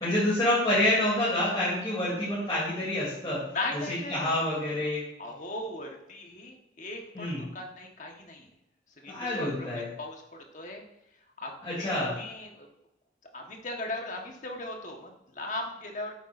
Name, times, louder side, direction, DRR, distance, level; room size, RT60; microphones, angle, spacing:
voice 1, 0.0-3.4 3.7-5.0 7.1-7.5 9.1-9.9 11.6-12.2, left 1 dB, 20° left, -10 dB, 3.1 m, -27 dB
voice 2, 3.5-4.4 5.2-8.5 9.0-9.5 9.7-10.8 11.4-11.5 11.8-12.7 13.3-16.1, left 2 dB, 45° left, 1 dB, 1.4 m, -38 dB
8.9 x 8.6 x 2.7 m, 0.80 s
head